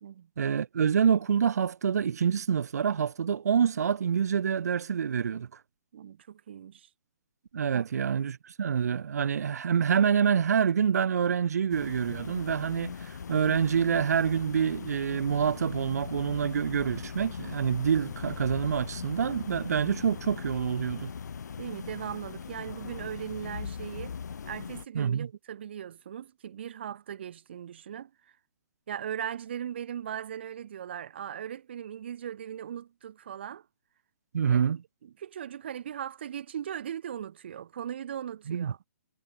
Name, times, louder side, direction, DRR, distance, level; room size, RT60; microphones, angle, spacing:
voice 1, 0.4-5.5 7.5-21.1 24.9-25.3 34.3-34.8 38.5-38.7, right 7 dB, 65° right, 0.5 m, -27 dB
voice 2, 5.9-6.9 7.7-7.9 21.6-24.2 24.5-28.1 28.9-33.7 34.5-34.6 35.0-38.8, right 9 dB, 40° right, 2.1 m, -38 dB
sound 1, 11.7-24.8, left 6 dB, 85° left, 0.9 m, -40 dB
hypercardioid pair, 180°, 9 cm